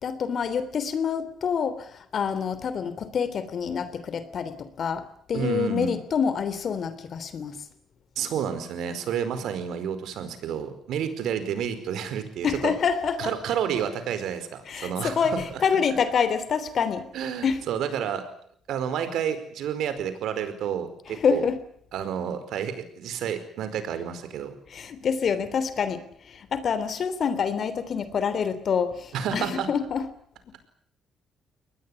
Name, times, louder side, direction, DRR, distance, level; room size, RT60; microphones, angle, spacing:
voice 1, 0.0-7.6 12.4-13.3 14.7-17.1 17.4-17.6 21.1-21.6 24.7-30.1, left 6 dB, 55° left, 14 dB, 3.3 m, -27 dB
voice 2, 5.3-6.0 8.1-12.7 13.2-15.4 17.1-18.2 18.7-21.4 21.9-24.5 29.1-29.7, right 8 dB, 75° right, 11 dB, 4.9 m, -30 dB
23.0 x 19.5 x 9.8 m, 0.64 s
cardioid pair, 75°, 0 cm